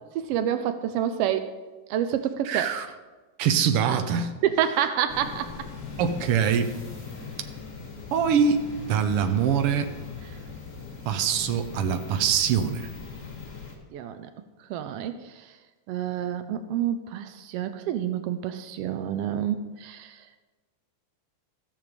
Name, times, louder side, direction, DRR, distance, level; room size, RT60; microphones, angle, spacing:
voice 1, 0.1-1.5 1.9-2.7 4.4-5.5 13.9-14.3 14.7-15.3 15.9-20.1, right 10 dB, 90° right, 9 dB, 1.3 m, -28 dB
voice 2, 2.4-2.9 3.4-4.3 6.0-6.7 8.1-9.9 11.0-12.9, right 7 dB, 70° right, 8 dB, 1.4 m, -24 dB
sound 1, 5.1-13.8, left 5 dB, 30° left, 1.8 m, -40 dB
14.5 x 7.4 x 5.1 m, 1.3 s
omnidirectional pair, 3.4 m